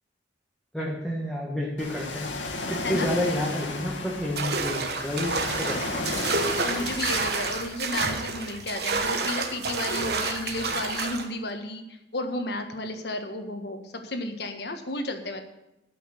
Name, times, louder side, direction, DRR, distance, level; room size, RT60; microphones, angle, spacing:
voice 1, 0.7-2.3 2.7-5.8, left 1 dB, ahead, -4 dB, 1.7 m, -30 dB
Ocean, 1.8-7.6, left 2 dB, 85° left, 2.1 m, -34 dB
sound 1, 4.4-11.3, right 4 dB, 55° right, 1.3 m, -29 dB
voice 2, 6.6-11.8 12.1-15.4, left 2 dB, 60° left, 6 dB, 1.5 m, -32 dB
12.5 x 6.4 x 7.9 m, 0.91 s
head